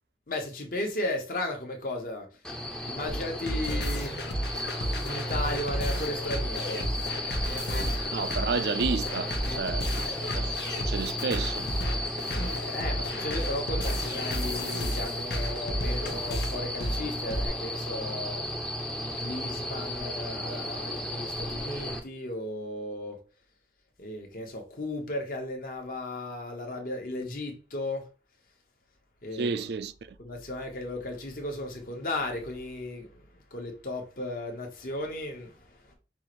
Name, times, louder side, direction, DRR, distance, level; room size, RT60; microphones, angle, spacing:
voice 1, 0.3-2.3 2.8-4.2 5.0-6.8 12.7-18.4 19.2-23.2 24.0-28.1 29.2-29.7 30.2-35.9, left 1 dB, 50° left, 1.0 m, -35 dB
sound 1, 2.4-22.0, left 1 dB, 5° left, 0.6 m, -34 dB
sound 2, 3.1-17.5, equal, 75° left, 0.8 m, -32 dB
voice 2, 8.1-11.7 29.3-29.9, right 4 dB, 65° right, 0.4 m, -31 dB
5.4 x 2.5 x 3.0 m
head